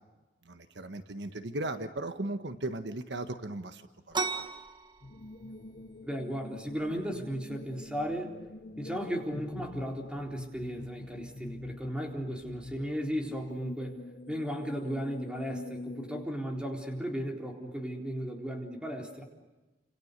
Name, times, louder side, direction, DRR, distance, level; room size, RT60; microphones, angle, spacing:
voice 1, 0.4-4.5, right 2 dB, 70° right, 9 dB, 1.5 m, -37 dB
sound 1, 4.1-13.5, right 4 dB, 25° right, 1.9 m, -43 dB
sound 2, 5.0-16.3, left 2 dB, 50° left, 0.9 m, -45 dB
voice 2, 6.0-8.4 8.8-19.2, equal, 5° right, 2 dB, 3.9 m, -35 dB
29.5 x 27.0 x 6.8 m, 1.1 s
head